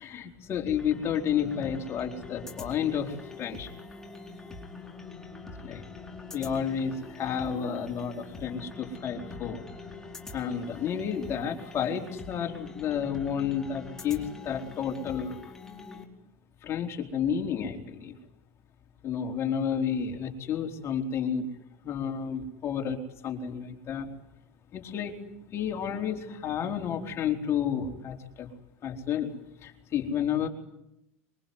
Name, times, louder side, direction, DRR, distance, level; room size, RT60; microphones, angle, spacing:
voice 1, 0.0-3.7 5.6-5.8 6.3-9.6 10.3-15.4 16.6-18.2 19.0-21.5 21.8-23.0 23.2-24.1 24.7-25.2 25.5-28.5 28.8-29.3 29.6-30.5, left 8 dB, 35° left, 2 dB, 4.4 m, -31 dB
sound 1, 0.7-16.0, left 3 dB, 5° left, 4.4 m, -44 dB
23.5 x 23.5 x 9.6 m, 0.84 s
hypercardioid pair, 105°, 8 cm